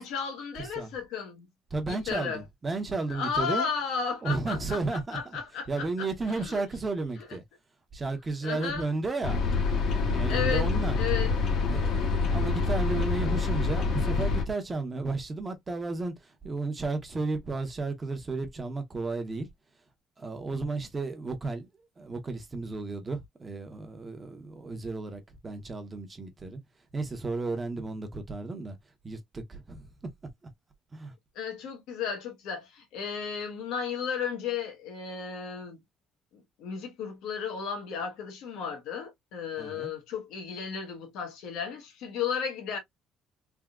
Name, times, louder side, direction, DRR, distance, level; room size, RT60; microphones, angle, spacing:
voice 1, 0.0-1.5 1.9-2.4 3.1-6.6 8.4-8.9 10.3-10.7 11.0-11.7 31.3-35.8 36.3-42.8, left 6 dB, 80° left, 1.1 m, -34 dB
voice 2, 0.5-0.9 1.7-3.7 4.2-7.4 7.9-9.4 9.9-11.0 11.7-19.5 20.2-21.7 22.0-26.6 26.9-28.8 29.0-29.9 30.9-31.1 39.6-39.9, right 3 dB, 20° right, 0.8 m, -33 dB
sound 1, 9.2-14.4, left 4 dB, 50° left, 0.9 m, -26 dB
3.5 x 2.7 x 2.3 m
cardioid pair, 155°, 0 cm